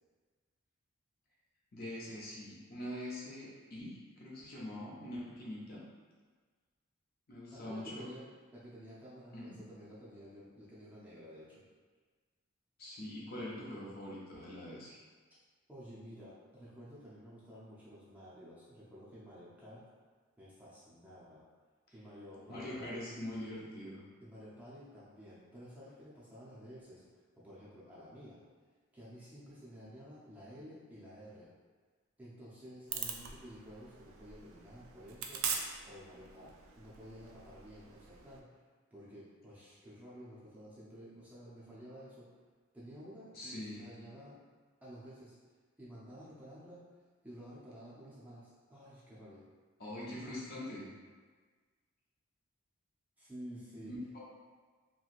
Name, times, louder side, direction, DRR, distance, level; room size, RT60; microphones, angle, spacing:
voice 1, 1.7-5.9 7.3-8.1 9.3-9.6 12.8-15.0 22.5-24.0 43.3-43.9 49.8-50.9 53.9-54.2, left 1 dB, 45° left, -6 dB, 0.6 m, -43 dB
voice 2, 7.5-8.2 8.5-11.5 15.7-19.8 20.4-21.4 21.9-23.0 24.2-27.0 27.4-28.4 28.9-31.5 32.2-35.4 35.8-38.6 38.9-42.3 42.7-44.4 44.8-45.3 45.8-46.8 47.2-49.4 53.2-53.9, equal, 5° right, -9 dB, 0.5 m, -52 dB
sound 1, 32.9-38.4, right 6 dB, 75° right, 0.3 m, -43 dB
2.9 x 2.7 x 2.5 m, 1.5 s
head